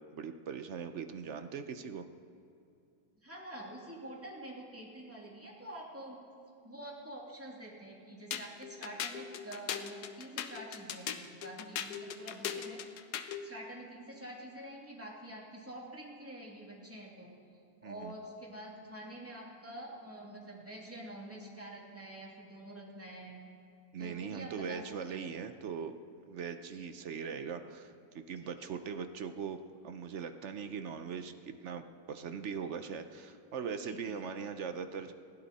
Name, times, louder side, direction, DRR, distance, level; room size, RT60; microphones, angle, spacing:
voice 1, 0.1-2.1 17.8-18.1 23.9-25.9 26.3-29.6 29.8-35.1, right 6 dB, 55° right, 9 dB, 0.8 m, -40 dB
voice 2, 3.2-6.2 6.6-12.8 13.4-17.3 17.8-23.4 24.0-24.8 25.1-25.3 26.7-26.9 28.6-28.7 33.8-34.4, right 1 dB, 5° right, -4 dB, 2.7 m, -47 dB
sound 1, 8.3-13.5, left 8 dB, 70° left, 1.2 m, -39 dB
20.0 x 15.5 x 4.2 m, 2.5 s
omnidirectional pair, 1.9 m